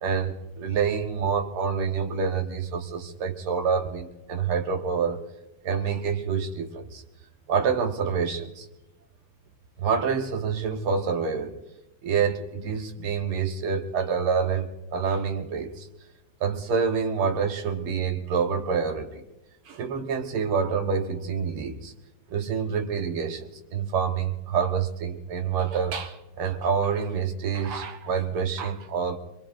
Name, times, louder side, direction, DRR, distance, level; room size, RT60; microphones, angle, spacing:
voice 1, 0.0-5.2 5.6-7.0 7.5-8.7 9.8-11.6 12.0-15.9 16.4-19.2 19.7-21.9 22.3-29.2, right 6 dB, 85° right, 4 dB, 2.1 m, -27 dB
24.5 x 22.0 x 2.6 m, 0.94 s
omnidirectional pair, 2.4 m